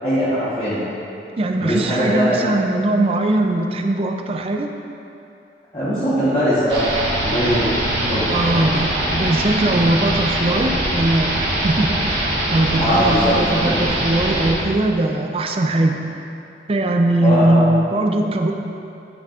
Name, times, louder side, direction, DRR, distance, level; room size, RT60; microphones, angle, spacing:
voice 1, 0.0-0.8 1.6-2.5 5.7-7.7 8.1-8.4 12.8-13.4 13.6-13.7 17.2-17.7, equal, 30° left, -12 dB, 1.1 m, -20 dB
voice 2, 1.4-4.7 8.3-11.3 11.6-16.0 16.7-18.5, right 2 dB, 30° right, 4 dB, 0.4 m, -20 dB
sound 1, 6.7-14.5, right 1 dB, 75° right, 1.5 m, -22 dB
9.2 x 5.8 x 2.4 m, 2.7 s
head